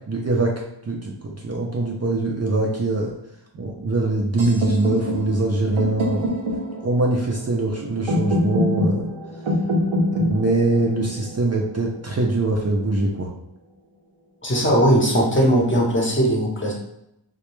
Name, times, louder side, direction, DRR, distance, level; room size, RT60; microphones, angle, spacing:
voice 1, 0.0-3.1 3.5-6.4 6.8-9.1 10.1-13.3, right 2 dB, 35° right, -2 dB, 0.5 m, -23 dB
sound 1, 4.4-12.3, equal, 90° right, 0.7 m, -26 dB
voice 2, 14.4-16.7, equal, 25° left, -2 dB, 0.8 m, -19 dB
2.2 x 2.2 x 3.0 m, 0.81 s
cardioid pair, 45°, 47 cm